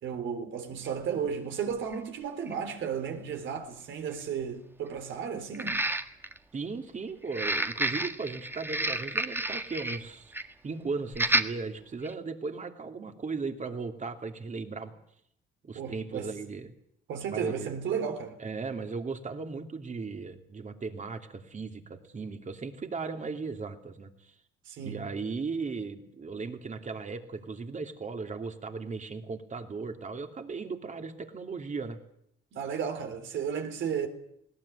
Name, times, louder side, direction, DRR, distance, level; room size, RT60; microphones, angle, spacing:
voice 1, 0.0-5.8 15.8-16.3 17.1-18.4 24.7-25.1 32.5-34.1, right 7 dB, 75° right, 3.7 m, -34 dB
sound 1, 0.8-0.9 1.9-2.0 2.5-2.6 5.5-6.4 7.3-10.0 10.3-10.5 11.1-11.5 12.0-12.1, right 1 dB, 10° right, 1.6 m, -30 dB
voice 2, 6.5-10.4 10.6-14.9 15.6-16.7 17.3-17.8 18.4-24.3 24.8-32.0, right 4 dB, 40° right, 2.8 m, -37 dB
20.0 x 18.0 x 10.0 m
cardioid pair, 90°, 20 cm